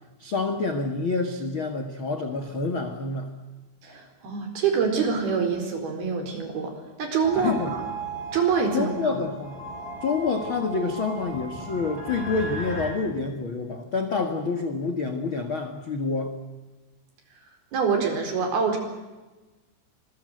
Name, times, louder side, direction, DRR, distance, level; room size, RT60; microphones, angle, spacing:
voice 1, 0.2-3.3 7.3-7.7 8.7-9.6 10.0-16.4, left 4 dB, 70° left, 6 dB, 1.2 m, -28 dB
voice 2, 3.8-7.8 8.3-9.1 17.7-18.8, right 5 dB, 55° right, 5 dB, 6.1 m, -25 dB
sound 1, 7.2-12.9, right 2 dB, 15° left, 5.7 m, -36 dB
26.5 x 22.0 x 7.9 m, 1.2 s
omnidirectional pair, 5.5 m